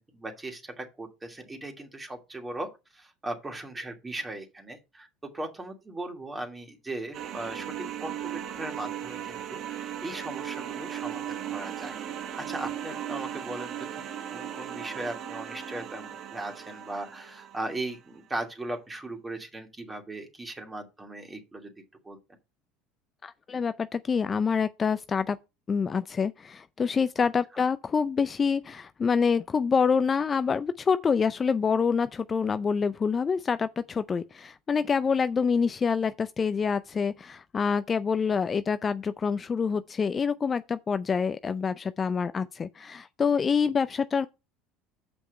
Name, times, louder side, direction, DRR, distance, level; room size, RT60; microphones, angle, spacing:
voice 1, 0.0-12.0 12.4-14.0 14.3-21.7 22.0-22.2 27.2-27.3 27.5-27.6, right 2 dB, 20° right, 2.6 m, -38 dB
sound 1, 7.1-17.9, right 10 dB, 55° right, 1.1 m, -37 dB
voice 2, 23.2-25.4 25.7-44.3, left 6 dB, 30° left, 0.4 m, -26 dB
7.2 x 5.4 x 5.2 m
hypercardioid pair, 75°, 0 cm